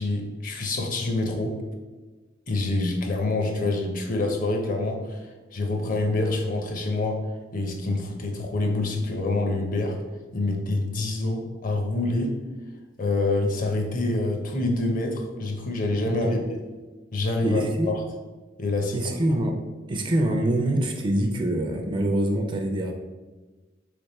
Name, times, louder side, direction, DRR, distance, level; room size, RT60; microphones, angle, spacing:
voice 1, 0.0-1.6 2.5-7.2 7.5-10.0 10.3-12.4 13.0-16.4 17.1-18.0 18.6-19.0, left 2 dB, 45° left, 3 dB, 0.7 m, -26 dB
voice 2, 16.0-16.4 17.4-18.0 18.9-19.6 19.9-22.9, right 1 dB, 25° right, 3 dB, 0.4 m, -25 dB
3.5 x 3.4 x 4.1 m, 1.3 s
head